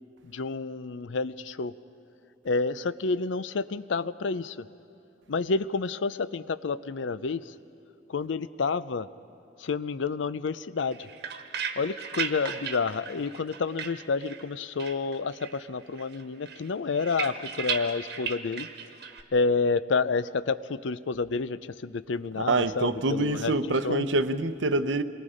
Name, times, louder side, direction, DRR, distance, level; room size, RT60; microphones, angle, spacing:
voice 1, 0.2-1.7 2.4-4.7 5.3-7.5 8.1-9.1 9.6-11.1 11.8-18.7 19.3-23.6 23.8-24.1, left 4 dB, 80° left, 0.5 m, -29 dB
sound 1, 10.8-14.5 14.8-15.7 16.0-19.2, right 6 dB, 60° right, 1.3 m, -36 dB
voice 2, 22.4-25.0, right 2 dB, 75° right, 0.8 m, -26 dB
27.5 x 22.5 x 5.0 m
head